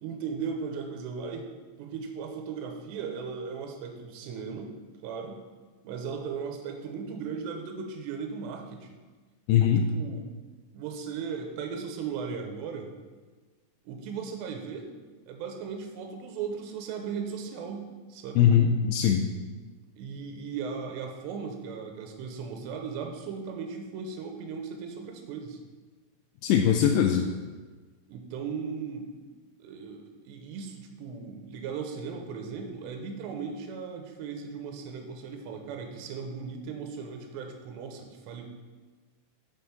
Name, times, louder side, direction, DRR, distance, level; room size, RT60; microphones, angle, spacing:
voice 1, 0.0-1.5 1.8-4.7 5.0-5.4 5.8-9.0 9.9-10.3 10.7-12.9 13.9-14.9 15.3-18.4 20.0-25.6 28.1-29.1 29.6-38.5, right 6 dB, 85° right, 3 dB, 3.0 m, -37 dB
voice 2, 9.5-9.8 18.4-19.3 26.4-27.3, left 8 dB, 90° left, 2 dB, 2.8 m, -21 dB
7.2 x 5.6 x 5.8 m, 1.4 s
omnidirectional pair, 4.9 m